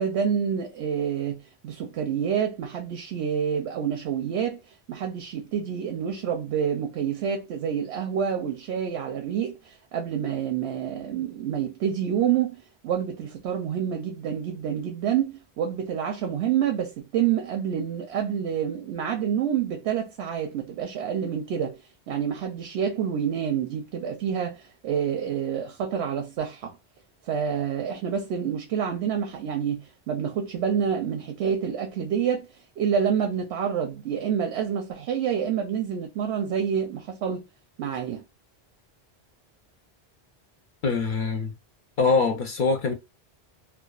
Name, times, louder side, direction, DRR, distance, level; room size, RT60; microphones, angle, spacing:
voice 1, 0.0-4.6 4.9-21.8 22.1-26.8 27.2-32.5 32.8-37.4 37.8-38.2, right 8 dB, 90° right, 0.9 m, -28 dB
voice 2, 40.8-41.5 42.0-42.9, left 4 dB, 60° left, 0.6 m, -23 dB
2.4 x 2.3 x 2.2 m
omnidirectional pair, 1.1 m